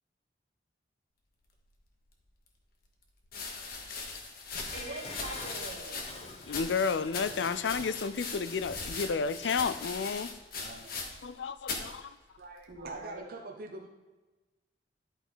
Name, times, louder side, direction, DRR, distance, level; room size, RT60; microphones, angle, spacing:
sound 1, 2.2-2.3 3.2-11.4 11.6-11.9 12.7-13.1, left 4 dB, 55° left, 1.3 m, -40 dB
voice 1, 4.5-6.2 8.4-8.5 10.6-11.0 12.7-13.3, right 2 dB, 80° right, -1 dB, 1.9 m, -44 dB
Dishes pots and pans, 4.6-9.8 10.2-10.3, left 2 dB, 35° left, 1.0 m, -47 dB
voice 2, 6.5-10.3 11.2-12.0, left 5 dB, 80° left, 13 dB, 0.4 m, -31 dB
voice 3, 12.4-13.9, right 2 dB, 55° right, 2 dB, 0.8 m, -43 dB
11.5 x 4.9 x 4.0 m, 1.2 s
head